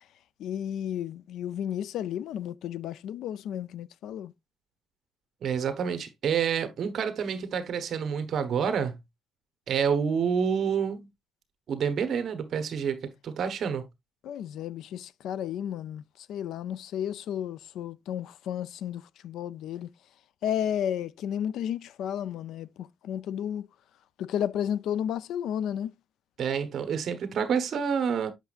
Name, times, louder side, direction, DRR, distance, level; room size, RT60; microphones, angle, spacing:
voice 1, 0.4-4.3 14.2-16.0 16.3-19.9 20.4-23.7 24.2-25.9, left 10 dB, 70° left, 0.4 m, -32 dB
voice 2, 5.4-9.0 9.7-11.1 11.7-13.9 26.4-28.3, right 7 dB, 45° right, 1.1 m, -28 dB
8.0 x 6.0 x 2.4 m
cardioid pair, 170°, 0 cm